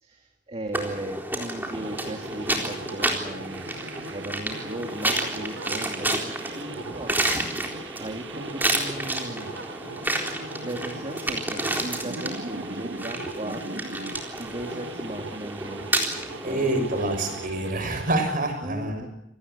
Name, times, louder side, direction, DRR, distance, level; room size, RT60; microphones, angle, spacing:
voice 1, 0.0-9.6 10.6-15.9 16.4-17.2 18.6-19.1, right 1 dB, 35° right, 4 dB, 2.0 m, -37 dB
sound 1, 0.7-17.5, right 1 dB, 10° right, 3.9 m, -30 dB
sound 2, 1.7-18.2, right 3 dB, 70° right, 1.2 m, -39 dB
voice 2, 16.4-19.1, right 2 dB, 50° right, 6 dB, 6.9 m, -27 dB
27.0 x 18.5 x 8.2 m, 0.80 s
head